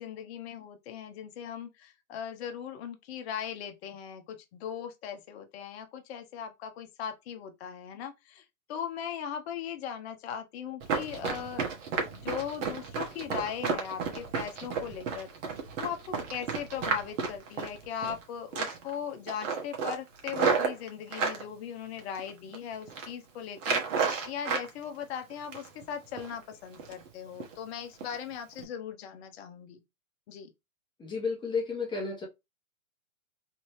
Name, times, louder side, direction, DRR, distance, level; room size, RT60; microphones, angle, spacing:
voice 1, 0.0-11.7 12.0-15.3 15.8-29.8 30.3-30.5, left 8 dB, 45° left, 0.9 m, -39 dB
Run, 10.8-18.2 18.5-18.9 19.3-21.4 22.0-22.5 22.8-23.1 23.6-24.7 25.0-25.8 26.2-26.3 26.7-27.1 27.4-27.5 28.0-28.1 28.5-28.6, right 5 dB, 60° right, 1.4 m, -32 dB
voice 2, 31.0-32.3, left 4 dB, 10° left, 1.1 m, -32 dB
3.3 x 2.7 x 3.2 m
hypercardioid pair, 130°, 42 cm